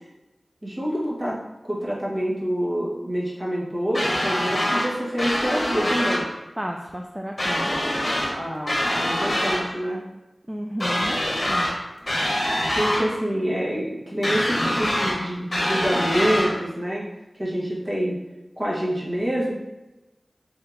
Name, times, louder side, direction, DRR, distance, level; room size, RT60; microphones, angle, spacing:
voice 1, 0.6-1.3 1.6-6.2 8.3-10.0 12.8-17.0 17.4-18.2 18.5-19.5, equal, 35° right, -6 dB, 1.4 m, -26 dB
sound 1, 3.9-4.9 5.2-6.2 7.4-8.3 8.7-9.6 10.8-11.7 12.1-13.0 14.2-15.2 15.5-16.5, left 1 dB, 40° left, 1.1 m, -24 dB
voice 2, 6.6-7.7 10.5-11.2 11.5-11.7, equal, 15° right, 1 dB, 0.3 m, -32 dB
3.7 x 3.0 x 3.5 m, 1.0 s
wide cardioid pair, 55°, 0 cm